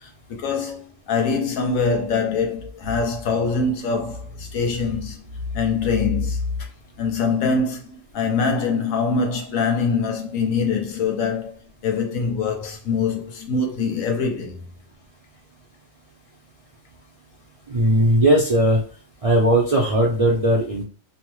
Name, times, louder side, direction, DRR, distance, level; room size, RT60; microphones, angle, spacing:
voice 1, 0.0-5.2 5.5-6.4 7.0-14.6, left 4 dB, 85° left, 1.1 m, -24 dB
voice 2, 17.7-18.8 19.2-20.8, right 1 dB, 55° right, 0.4 m, -18 dB
3.1 x 2.0 x 2.9 m
omnidirectional pair, 1.4 m